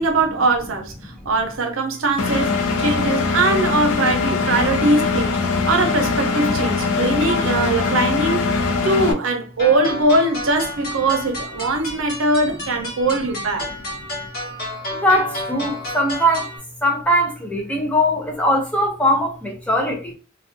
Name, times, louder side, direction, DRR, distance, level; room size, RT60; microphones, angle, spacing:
voice 1, 0.0-5.4 5.7-8.4 8.8-13.7, right 2 dB, 75° right, 0.6 m, -21 dB
Engine, 2.2-9.1, left 4 dB, 90° left, 0.5 m, -21 dB
sound 1, 9.6-16.6, left 1 dB, 45° left, 1.3 m, -31 dB
voice 2, 14.9-16.5 16.8-20.1, equal, 5° left, 0.5 m, -20 dB
2.4 x 2.3 x 2.5 m
head